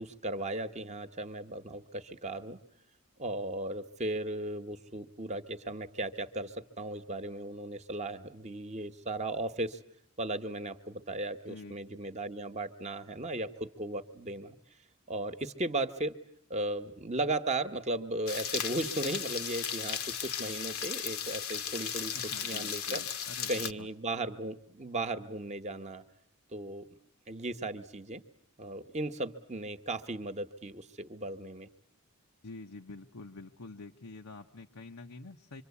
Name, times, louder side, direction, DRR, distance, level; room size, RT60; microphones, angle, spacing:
voice 1, 0.0-2.6 3.2-9.8 10.2-14.6 15.1-16.2 16.5-22.2 22.4-23.0 23.5-26.0 26.5-26.9 27.3-28.2 28.6-31.7, right 2 dB, 30° right, 8 dB, 1.1 m, -36 dB
sound 1, 18.3-23.7, left 8 dB, 70° left, 1.1 m, -36 dB
voice 2, 22.1-23.9 32.4-35.6, left 3 dB, 85° left, 4 dB, 1.1 m, -47 dB
26.5 x 24.5 x 8.4 m, 0.65 s
head